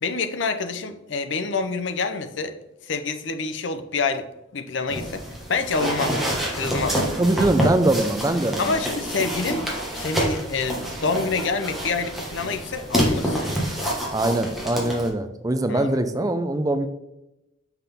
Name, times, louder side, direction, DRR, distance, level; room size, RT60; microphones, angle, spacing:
voice 1, 0.0-2.6 2.8-4.3 4.5-5.2 5.5-6.2 6.5-7.0 8.6-13.5 15.7-16.0, left 4 dB, 65° left, 9 dB, 0.7 m, -27 dB
sound 1, 4.9-15.1, equal, ahead, 1.5 m, -27 dB
voice 2, 7.2-8.8 14.1-16.9, right 1 dB, 20° right, 9 dB, 0.5 m, -22 dB
5.8 x 5.8 x 3.5 m, 0.90 s
head